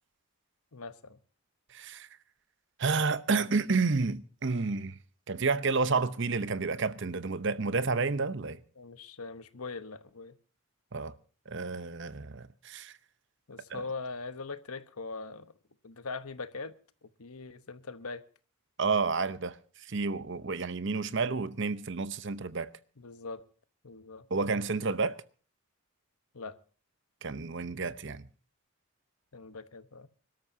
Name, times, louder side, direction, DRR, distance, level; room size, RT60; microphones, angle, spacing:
voice 1, 0.7-1.2 8.8-10.4 13.5-15.5 15.8-16.7 17.0-18.2 21.1-21.2 23.0-23.4 23.8-24.3 26.3-26.6 29.3-30.1, left 4 dB, 80° left, 1.1 m, -41 dB
voice 2, 1.7-2.1 2.8-5.0 5.3-8.6 10.9-11.1 11.5-12.9 13.7-13.9 18.8-22.7 24.3-25.2 27.2-28.3, right 4 dB, 55° right, 0.8 m, -30 dB
26.0 x 13.0 x 2.7 m
head